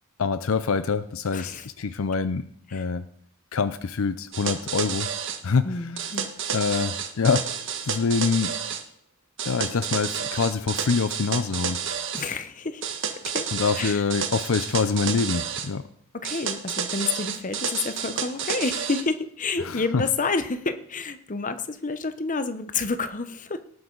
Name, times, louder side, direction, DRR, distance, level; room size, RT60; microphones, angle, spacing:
voice 1, 0.2-2.4 2.7-3.1 3.5-5.1 5.4-5.7 6.5-7.5 7.8-8.5 9.4-11.8 13.5-15.8 19.9-20.0, left 5 dB, 65° left, 13 dB, 0.6 m, -25 dB
voice 2, 1.3-1.7 2.7-2.9 5.6-6.3 12.1-13.5 13.7-14.0 16.1-23.6, left 4 dB, 35° left, 11 dB, 0.8 m, -29 dB
sound 1, 4.3-5.4 6.0-8.8 9.4-12.3 12.8-15.7 16.2-19.0, right 7 dB, 60° right, 1.3 m, -30 dB
18.5 x 9.5 x 3.9 m, 0.64 s
head